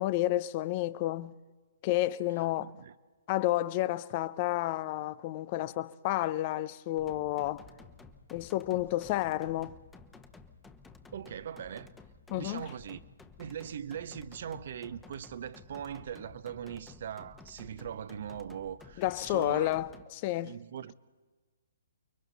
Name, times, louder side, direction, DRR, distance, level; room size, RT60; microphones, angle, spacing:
voice 1, 0.0-1.3 1.8-2.7 3.3-7.7 8.3-9.8 12.3-12.6 19.0-19.9 20.2-20.5, left 15 dB, 35° left, 0.7 m, -30 dB
voice 2, 2.6-2.9 11.1-11.9 12.3-13.0 13.4-19.7 20.4-21.0, right 9 dB, 55° right, 0.9 m, -40 dB
sound 1, 7.0-20.0, left 4 dB, 10° left, 1.2 m, -54 dB
29.5 x 23.0 x 4.1 m
figure-of-eight pair, 130°, 0 cm